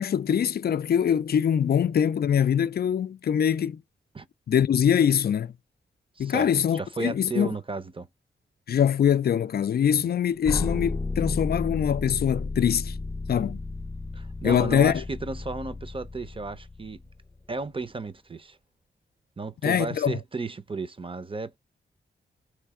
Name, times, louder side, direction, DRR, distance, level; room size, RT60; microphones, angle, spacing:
voice 1, 0.0-3.8 4.5-5.5 6.2-7.5 8.7-13.0 13.3-13.6 14.4-15.0 19.6-20.2, left 8 dB, 55° left, 0.4 m, -23 dB
voice 2, 6.2-8.1 9.9-10.1 14.1-17.0 17.5-18.6 19.4-21.6, right 3 dB, 25° right, 0.7 m, -34 dB
sound 1, 10.4-17.4, left 3 dB, 20° left, 0.7 m, -33 dB
3.3 x 3.2 x 4.8 m
cardioid pair, 55°, 19 cm